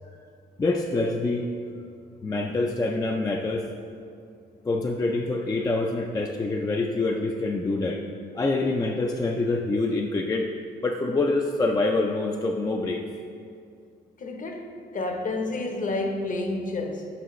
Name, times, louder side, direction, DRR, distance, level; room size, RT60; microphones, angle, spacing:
voice 1, 0.6-1.5 2.2-3.7 4.6-8.0 8.3-10.5 10.8-13.0, left 2 dB, 20° left, 0.4 m, -26 dB
voice 2, 14.2-17.1, left 2 dB, 40° left, 0.8 m, -30 dB
7.0 x 6.0 x 3.0 m
cardioid pair, 90°, 20 cm